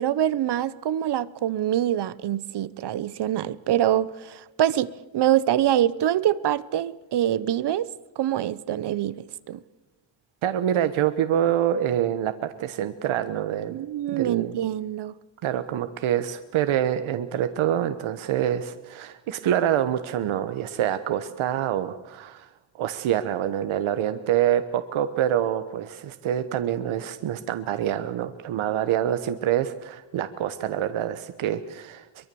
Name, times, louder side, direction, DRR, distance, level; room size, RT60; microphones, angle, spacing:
voice 1, 0.0-7.9 8.2-9.6 13.7-15.1, right 11 dB, 60° right, 0.9 m, -25 dB
voice 2, 10.4-13.8 14.1-14.6 15.4-22.5 22.8-32.3, right 10 dB, 85° right, 1.2 m, -26 dB
23.5 x 22.5 x 7.0 m
wide cardioid pair, 160°, 47 cm